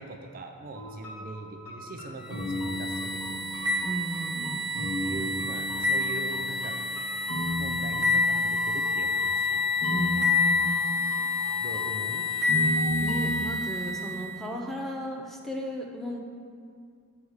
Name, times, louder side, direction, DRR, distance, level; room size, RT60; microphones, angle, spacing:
voice 1, 0.0-3.6 5.0-6.8 7.6-9.6 11.6-12.3, right 2 dB, 40° right, 4 dB, 0.5 m, -41 dB
sound 1, 0.7-13.3, equal, 85° left, 2.2 m, -35 dB
sound 2, 2.3-14.4, left 3 dB, 20° right, 1.4 m, -28 dB
voice 2, 3.8-4.7 9.9-10.7 13.0-16.2, equal, ahead, -1 dB, 0.6 m, -35 dB
7.0 x 4.8 x 6.4 m, 2.2 s
head